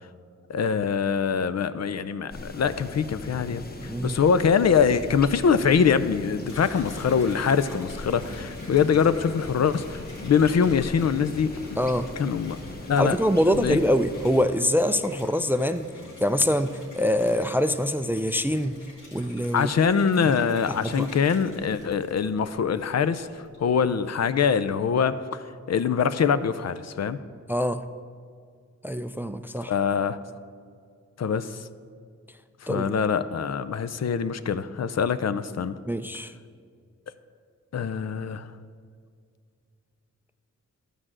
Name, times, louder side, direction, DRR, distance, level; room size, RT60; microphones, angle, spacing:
voice 1, 0.5-11.8 12.2-12.6 12.9-13.2 13.5-13.8 19.5-25.4 25.7-27.2 29.7-30.2 31.2-31.6 32.6-35.8 37.7-38.5, left 6 dB, 60° left, 13 dB, 0.5 m, -24 dB
sound 1, 2.3-14.5, left 2 dB, 30° left, 0.9 m, -39 dB
voice 2, 3.9-4.2 11.8-12.1 13.0-15.9 16.2-18.8 19.1-19.7 20.3-20.4 20.8-21.1 27.5-27.8 28.8-29.7 32.7-32.9 35.9-36.3, equal, 5° right, 11 dB, 0.3 m, -24 dB
Water tap faucet / Bathtub (filling or washing), 6.0-22.8 23.3-23.9, left 2 dB, 90° left, 2.7 m, -45 dB
12.0 x 4.9 x 7.6 m, 2.1 s
wide cardioid pair, 85°, 30 cm